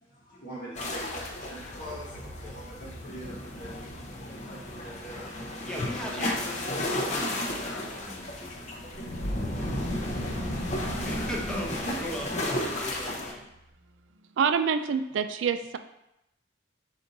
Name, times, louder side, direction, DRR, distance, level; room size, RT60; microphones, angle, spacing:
voice 1, 0.0-6.3 6.6-6.9 7.3-9.6, equal, 60° left, -9 dB, 1.0 m, -46 dB
sound 1, 0.7-13.3, left 1 dB, 40° left, 0.6 m, -34 dB
voice 2, 5.6-8.8 10.5-13.5, left 1 dB, 5° left, -3 dB, 0.7 m, -38 dB
sound 2, 8.9-14.3, equal, 20° right, 1.0 m, -40 dB
voice 3, 14.4-15.8, right 6 dB, 90° right, 9 dB, 0.3 m, -26 dB
5.1 x 2.5 x 3.9 m, 0.86 s
head